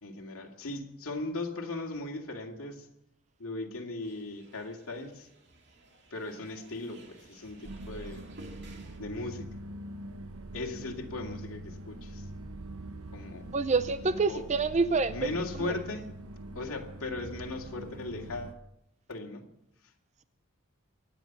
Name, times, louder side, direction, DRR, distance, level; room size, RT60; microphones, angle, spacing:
voice 1, 0.0-2.9 3.4-5.3 6.1-8.3 9.0-9.6 10.5-12.3 13.1-13.5 14.0-14.5 15.1-16.1 16.5-18.6 19.1-19.4, left 2 dB, 80° left, 1 dB, 2.3 m, -38 dB
sound 1, 4.0-9.0, right 2 dB, 50° right, 2.5 m, -55 dB
sound 2, 7.6-18.5, right 1 dB, 80° right, 1.0 m, -43 dB
voice 2, 13.5-15.2 15.6-15.8, right 4 dB, 30° right, 12 dB, 0.5 m, -27 dB
24.0 x 9.4 x 6.0 m, 0.86 s
head